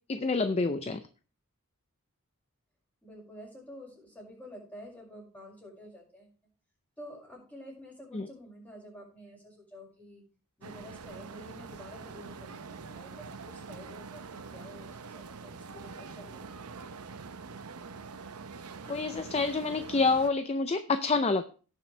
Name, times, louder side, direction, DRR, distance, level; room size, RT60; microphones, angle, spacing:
voice 1, 0.1-1.0 8.1-8.3 18.9-21.4, left 3 dB, 30° left, 10 dB, 0.5 m, -27 dB
voice 2, 3.0-6.3 7.0-10.2 10.6-16.6, equal, 5° left, -4 dB, 5.6 m, -49 dB
sound 1, 10.6-20.3, right 4 dB, 90° right, 0.8 m, -44 dB
17.5 x 6.7 x 3.3 m, 0.37 s
head